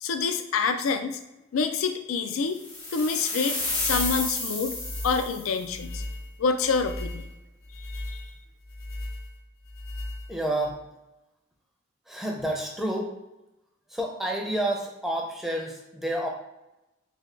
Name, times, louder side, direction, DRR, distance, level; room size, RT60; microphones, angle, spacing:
voice 1, 0.0-1.2 1.5-2.6 2.9-4.8 5.0-6.0 6.4-7.2 7.9-8.2, left 5 dB, 85° left, 8 dB, 0.4 m, -27 dB
sound 1, 2.6-5.6, left 2 dB, 70° left, 1.2 m, -31 dB
sound 2, 3.6-10.7, left 1 dB, 50° left, 0.7 m, -38 dB
voice 2, 10.3-10.8 12.1-13.2 13.9-16.3, right 1 dB, ahead, -1 dB, 0.5 m, -29 dB
3.3 x 2.3 x 3.7 m, 0.96 s
head